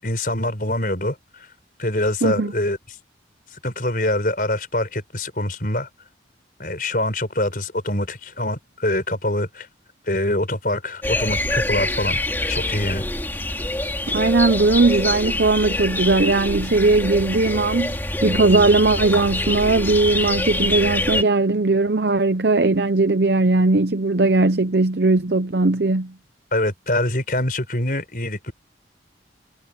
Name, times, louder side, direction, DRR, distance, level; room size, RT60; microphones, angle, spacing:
voice 1, 0.0-1.5 1.8-2.8 3.6-5.9 6.6-9.7 10.1-12.2 12.5-13.0 26.5-28.5, left 1 dB, 50° left, 5.8 m, -24 dB
voice 2, 2.2-2.5 14.1-26.1, right 3 dB, 65° right, 0.8 m, -19 dB
sound 1, 11.0-21.2, left 2 dB, 10° left, 2.4 m, -25 dB
head